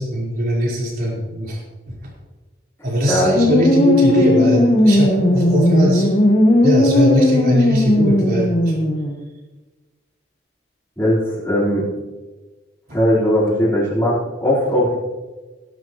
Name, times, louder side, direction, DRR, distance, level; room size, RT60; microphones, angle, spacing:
voice 1, 0.0-1.6 1.9-2.0 2.8-6.1 6.6-8.8 12.9-13.0, equal, 50° right, -4 dB, 4.7 m, -20 dB
sound 1, 3.4-9.2, left 1 dB, 35° left, 1.2 m, -16 dB
voice 2, 11.0-11.8 12.9-15.0, equal, 10° left, -10 dB, 4.6 m, -18 dB
17.0 x 12.0 x 3.2 m, 1.2 s
head